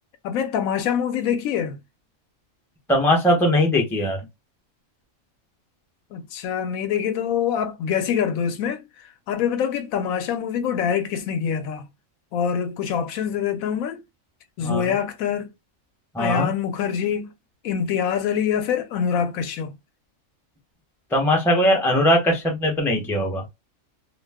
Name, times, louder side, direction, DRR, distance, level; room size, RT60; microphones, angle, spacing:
voice 1, 0.2-1.8 6.1-8.8 9.3-11.9 12.3-14.0 14.6-15.5 16.2-17.3 17.6-19.7, left 8 dB, 85° left, 1.0 m, -25 dB
voice 2, 2.9-4.2 14.6-14.9 16.1-16.5 21.1-23.4, left 1 dB, 5° left, 0.5 m, -20 dB
2.4 x 2.2 x 3.3 m
omnidirectional pair, 1.4 m